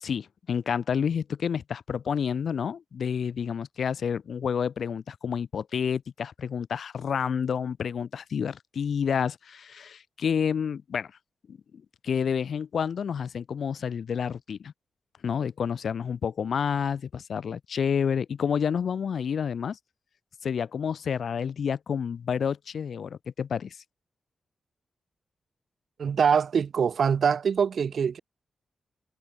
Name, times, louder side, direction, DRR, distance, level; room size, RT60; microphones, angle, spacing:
voice 1, 0.0-11.1 11.5-11.6 12.0-14.7 15.2-19.8 20.4-23.8, left 7 dB, 70° left, 1.1 m, -29 dB
voice 2, 26.0-28.2, right 6 dB, 70° right, 0.8 m, -24 dB
cardioid pair, 70°, 0 cm